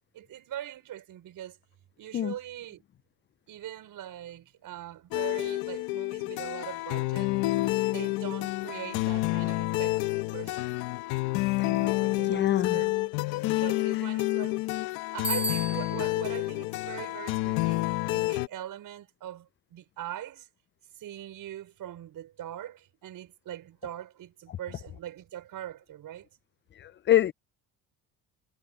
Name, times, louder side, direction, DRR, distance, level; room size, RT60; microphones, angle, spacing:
voice 1, 0.1-1.6 2.0-2.8 3.5-7.3 7.9-10.8 11.6-13.1 13.6-14.8 15.1-20.5 21.0-26.3, right 12 dB, 65° right, 5.8 m, -42 dB
sound 1, 5.1-18.5, left 20 dB, 85° left, 1.5 m, -29 dB
voice 2, 12.3-12.8 26.8-27.3, left 11 dB, 35° left, 0.4 m, -25 dB
Bicycle bell, 15.2-16.2, equal, 5° right, 1.4 m, -32 dB
supercardioid pair, 85°, 36 cm